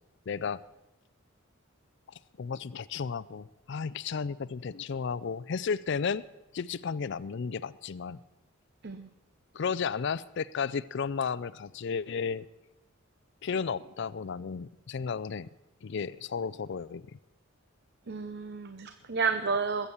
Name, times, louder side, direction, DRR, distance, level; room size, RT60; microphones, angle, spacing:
voice 1, 0.3-0.6 2.1-6.2 6.5-8.2 9.5-12.4 13.4-15.5 15.8-17.1, left 6 dB, 60° left, 16 dB, 0.4 m, -33 dB
voice 2, 18.1-19.9, right 5 dB, 55° right, 9 dB, 0.8 m, -31 dB
21.0 x 8.2 x 7.1 m, 0.97 s
head